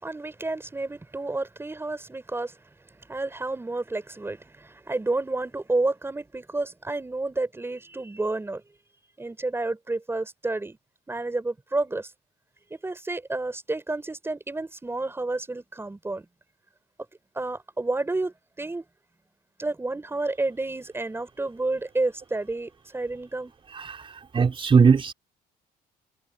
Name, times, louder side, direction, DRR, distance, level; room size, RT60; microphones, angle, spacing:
voice 1, 0.0-2.5 3.1-8.6 9.2-10.8 11.1-12.1 12.7-16.3 17.3-18.8 19.6-23.5, right 2 dB, 15° right, 4.9 m, -30 dB
voice 2, 23.7-25.1, right 5 dB, 30° right, 3.8 m, -20 dB
cardioid pair, 110°, 17 cm